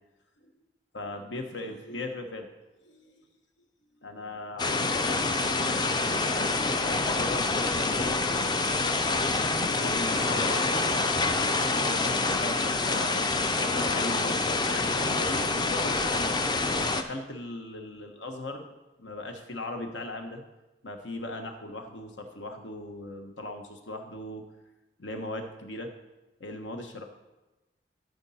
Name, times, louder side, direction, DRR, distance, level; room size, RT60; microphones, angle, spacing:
voice 1, 0.9-2.5 2.8-3.1 4.0-8.2 9.8-16.5 16.9-18.7 19.0-20.4 20.8-24.5 25.0-25.9 26.4-27.0, left 2 dB, 85° left, 5 dB, 1.1 m, -38 dB
sound 1, 4.6-17.0, left 3 dB, 25° left, 0.4 m, -27 dB
13.0 x 5.2 x 4.2 m, 1.1 s
head